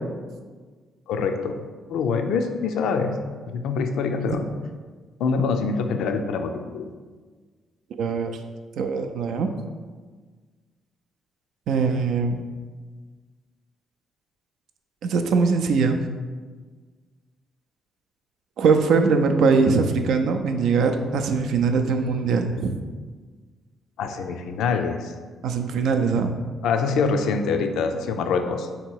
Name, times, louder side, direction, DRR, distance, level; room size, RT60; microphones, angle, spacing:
voice 1, 1.1-1.6 1.9-3.2 3.5-4.4 5.2-6.9 24.0-25.1 26.6-28.7, left 5 dB, 80° left, 7 dB, 0.4 m, -25 dB
voice 2, 8.0-8.3 8.8-9.5 11.7-12.4 15.0-16.0 18.6-22.7 25.4-26.3, right 4 dB, 75° right, 6 dB, 0.4 m, -21 dB
3.7 x 2.9 x 4.5 m, 1.5 s
cardioid pair, 90°, 0 cm